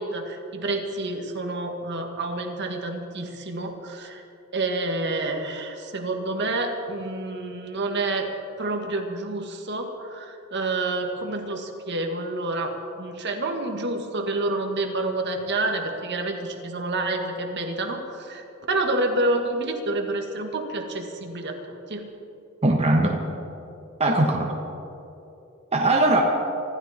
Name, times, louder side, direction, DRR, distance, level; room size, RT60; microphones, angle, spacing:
voice 1, 0.0-4.2 4.5-8.3 8.6-21.6 21.9-22.1, right 2 dB, 55° right, 4 dB, 1.7 m, -28 dB
voice 2, 22.6-23.2 24.0-24.5 25.7-26.2, right 2 dB, 30° right, 0 dB, 1.3 m, -20 dB
25.0 x 12.5 x 4.4 m, 2.8 s
head